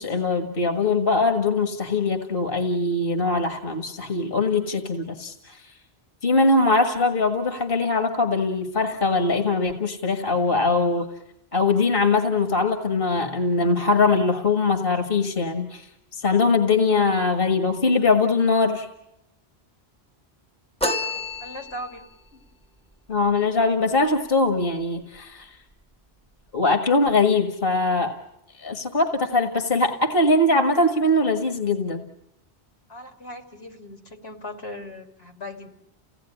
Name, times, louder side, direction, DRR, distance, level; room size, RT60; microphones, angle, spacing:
voice 1, 0.0-5.6 6.2-11.1 11.5-15.9 16.1-18.9 23.1-25.5 26.5-28.1 28.6-32.0, left 3 dB, 60° left, 5 dB, 1.8 m, -22 dB
sound 1, 20.8-22.1, left 1 dB, 5° left, 1.0 m, -28 dB
voice 2, 21.0-22.0 22.3-22.4 32.9-35.7, left 1 dB, 85° left, 3 dB, 3.0 m, -39 dB
30.0 x 17.5 x 9.9 m, 0.86 s
omnidirectional pair, 1.0 m